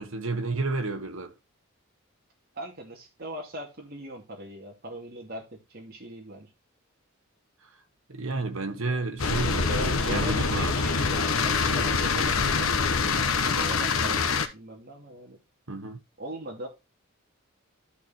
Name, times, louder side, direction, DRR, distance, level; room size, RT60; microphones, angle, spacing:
voice 1, 0.0-1.3 8.1-10.7 15.7-16.0, right 3 dB, 80° right, 1.8 m, -31 dB
voice 2, 2.5-6.5 8.9-9.0 9.7-13.0 13.4-15.4 16.2-16.7, right 1 dB, 50° right, 2.6 m, -40 dB
sound 1, 9.2-14.5, left 4 dB, 80° left, 1.1 m, -25 dB
13.0 x 4.4 x 4.6 m
head